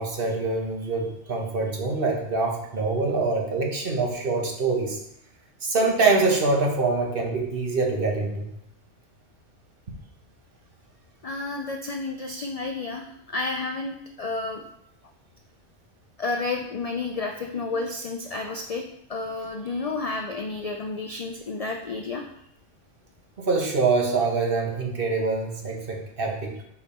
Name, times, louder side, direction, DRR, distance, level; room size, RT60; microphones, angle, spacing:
voice 1, 0.0-5.0 5.6-8.5 23.4-26.6, right 3 dB, 50° right, 0 dB, 1.2 m, -25 dB
voice 2, 11.2-14.6 16.2-18.8 19.1-22.2, left 3 dB, 65° left, 3 dB, 0.3 m, -31 dB
5.2 x 4.7 x 4.2 m, 0.77 s
omnidirectional pair, 1.2 m